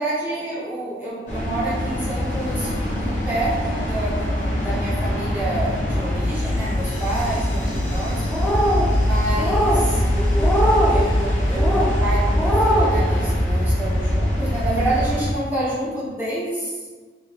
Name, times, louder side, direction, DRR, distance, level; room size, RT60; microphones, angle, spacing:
voice 1, 0.0-8.2 9.0-16.9, right 1 dB, 10° right, -9 dB, 1.0 m, -28 dB
sound 1, 1.3-15.3, left 1 dB, 40° left, 1.0 m, -22 dB
sound 2, 8.3-8.9 9.4-9.8 10.4-10.9 11.5-11.9 12.3-12.9, equal, 10° left, 0.4 m, -21 dB
3.2 x 3.2 x 2.9 m, 1.4 s
head